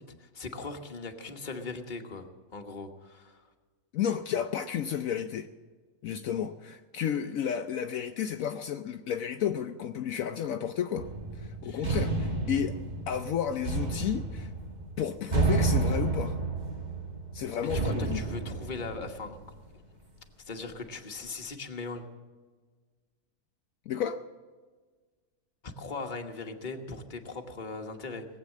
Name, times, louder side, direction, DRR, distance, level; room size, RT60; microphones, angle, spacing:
voice 1, 0.0-2.3 2.5-3.4 11.6-11.9 17.6-19.4 20.5-22.0 25.6-28.3, left 3 dB, 35° left, 1.4 m, -39 dB
voice 2, 3.9-5.5 6.0-11.1 11.3-12.8 13.1-14.5 15.0-16.4 17.3-18.2 23.9-24.2, left 9 dB, 75° left, 1.0 m, -32 dB
sound 1, 11.0-19.6, right 3 dB, 30° right, 1.8 m, -31 dB
19.0 x 8.3 x 7.5 m
omnidirectional pair, 1.5 m